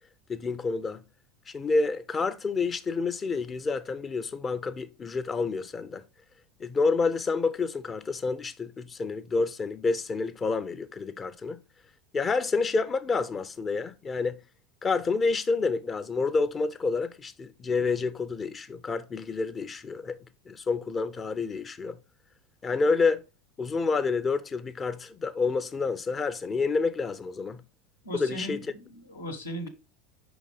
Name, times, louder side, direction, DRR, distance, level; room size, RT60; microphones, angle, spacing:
voice 1, 0.3-1.0 1.5-6.0 6.6-11.6 12.1-14.4 14.8-20.2 20.5-22.0 22.6-23.2 23.6-27.6 28.2-28.6, left 4 dB, 25° left, 0.5 m, -28 dB
voice 2, 28.0-29.7, right 1 dB, 80° left, 1.0 m, -37 dB
5.2 x 4.0 x 5.0 m
figure-of-eight pair, 80°, 0 cm